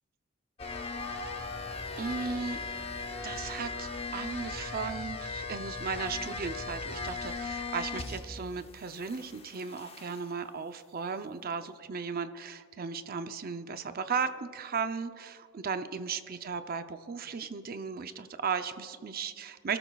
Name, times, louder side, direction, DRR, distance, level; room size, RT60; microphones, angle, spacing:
sound 1, 0.6-8.5 8.8-10.3, left 4 dB, 30° left, 0.8 m, -38 dB
voice 1, 1.1-1.4 2.0-2.6 3.2-19.8, right 5 dB, 45° right, 10 dB, 0.5 m, -36 dB
27.0 x 13.0 x 2.3 m, 2.2 s
head